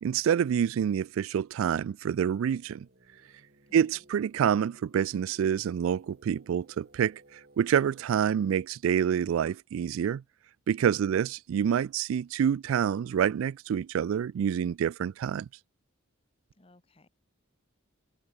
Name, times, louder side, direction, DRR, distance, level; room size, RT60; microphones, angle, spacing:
voice 1, 0.0-2.9 3.7-10.2 10.7-15.5, right 8 dB, 75° right, 0.3 m, -27 dB
sound 1, 2.0-8.2, right 1 dB, 45° right, 2.7 m, -59 dB
voice 2, 3.7-4.0 11.1-11.3 16.6-17.1, left 1 dB, 25° left, 1.3 m, -59 dB
head